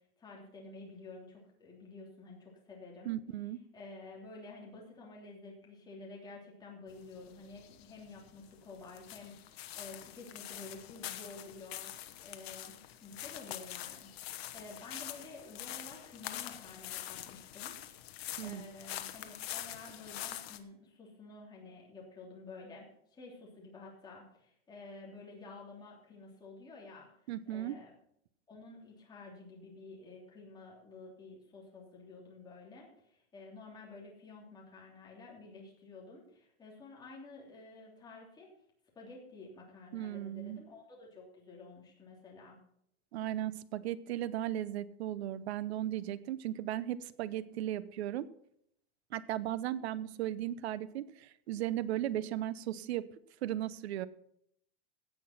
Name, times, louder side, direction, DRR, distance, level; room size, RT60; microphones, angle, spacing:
voice 1, 0.2-3.2 3.7-12.0 12.2-12.7 13.0-17.8 18.4-27.1 27.5-27.9 28.5-38.5 38.9-42.6, left 3 dB, 15° left, -3 dB, 3.1 m, -51 dB
voice 2, 3.0-3.6 18.4-18.6 27.3-27.8 39.9-40.6 43.1-48.3 49.1-53.1 53.4-54.1, right 12 dB, 80° right, 17 dB, 0.9 m, -36 dB
sound 1, 6.9-20.6, left 13 dB, 75° left, 1.3 m, -45 dB
16.5 x 6.1 x 5.9 m, 0.71 s
supercardioid pair, 165°, 31 cm